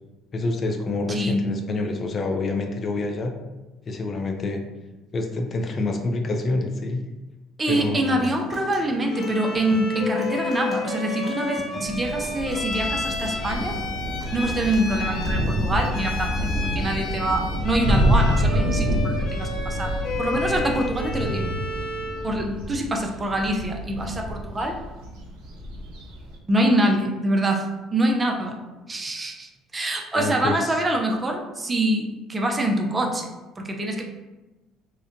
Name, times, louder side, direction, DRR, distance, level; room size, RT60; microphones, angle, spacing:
voice 1, 0.3-3.3 3.9-4.6 5.1-7.0 7.7-8.3 30.1-30.7, left 2 dB, 40° left, 4 dB, 0.3 m, -27 dB
voice 2, 1.1-1.4 7.6-13.8 14.3-16.5 16.7-21.5 22.2-24.8 26.5-28.6 28.9-33.3 33.6-34.0, right 1 dB, 25° right, 2 dB, 0.4 m, -25 dB
Human voice / Acoustic guitar, 7.7-15.7, right 1 dB, 15° left, 0.9 m, -39 dB
Bowed string instrument, 9.1-22.3, left 3 dB, 70° left, 0.7 m, -32 dB
sound 1, 11.8-26.3, equal, 90° right, 0.6 m, -27 dB
2.7 x 2.1 x 2.5 m, 1.1 s
supercardioid pair, 90°, 0 cm